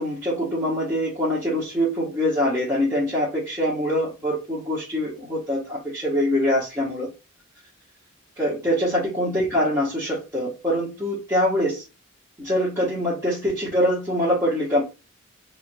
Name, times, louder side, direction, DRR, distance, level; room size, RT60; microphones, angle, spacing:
voice 1, 0.0-7.1 8.4-11.8 12.4-14.8, equal, 15° right, 1.1 m, -24 dB
3.2 x 2.6 x 2.6 m
head